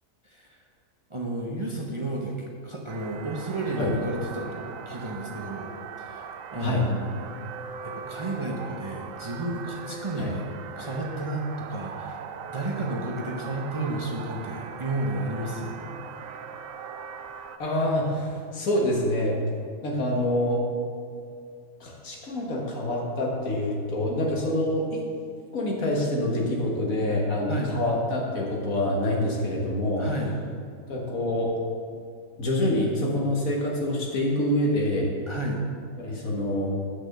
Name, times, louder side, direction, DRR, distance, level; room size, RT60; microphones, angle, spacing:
voice 1, 0.2-0.6 1.1-2.4 2.6-5.7 6.0-7.1 7.8-10.5 10.8-12.2 12.5-15.9 27.5-27.8 30.0-30.3 35.3-35.6, right 2 dB, 25° right, -1 dB, 0.8 m, -32 dB
sound 1, 2.9-17.6, right 6 dB, 75° right, 1.0 m, -40 dB
voice 2, 17.6-19.4 19.8-20.6 21.8-25.0 25.5-30.1 30.9-31.5 32.4-35.1 36.0-36.7, left 1 dB, 80° left, -2 dB, 1.8 m, -26 dB
8.8 x 6.0 x 6.5 m, 2.3 s
omnidirectional pair, 1.4 m